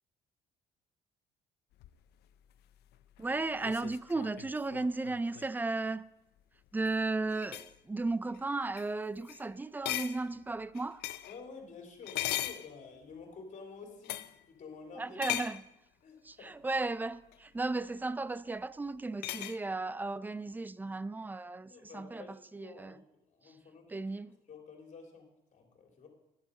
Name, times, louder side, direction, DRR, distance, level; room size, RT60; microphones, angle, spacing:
sound 1, 1.8-5.6 6.7-7.0 7.3-7.8 8.3-8.5 8.8-8.9 9.2-9.4 9.8-11.4 12.0-13.2 14.0-14.4 15.2-15.7 17.3-17.4 19.2-19.6, left 14 dB, 75° left, 0.5 m, -39 dB
voice 1, 3.2-6.1 6.7-11.0 15.0-15.6 16.2-23.0 23.9-24.4, right 3 dB, 10° right, 0.4 m, -35 dB
voice 2, 11.3-15.2 16.0-16.5 21.7-23.0 23.3-24.1 24.5-26.1, left 4 dB, 45° left, 3.3 m, -50 dB
11.0 x 9.7 x 5.2 m
cardioid pair, 110°, 17 cm